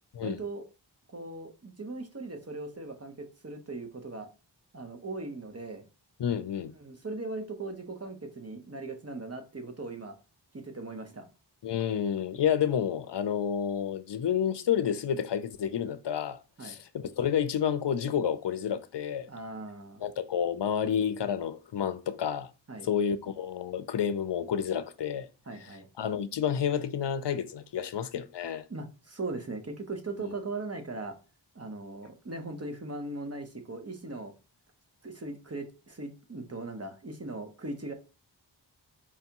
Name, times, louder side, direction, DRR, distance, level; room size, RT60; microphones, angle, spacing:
voice 1, 0.2-0.7 1.1-4.3 4.7-5.8 6.8-10.2 10.5-11.3 16.6-16.8 19.3-20.0 22.7-22.9 25.5-25.9 28.7-31.1 31.5-34.3 35.0-37.9, right 2 dB, 35° right, 0.9 m, -39 dB
voice 2, 6.2-6.7 11.6-19.3 20.0-22.5 22.8-25.3 26.0-28.6, left 8 dB, 70° left, 0.5 m, -30 dB
4.8 x 3.4 x 2.9 m
wide cardioid pair, 60°, 43 cm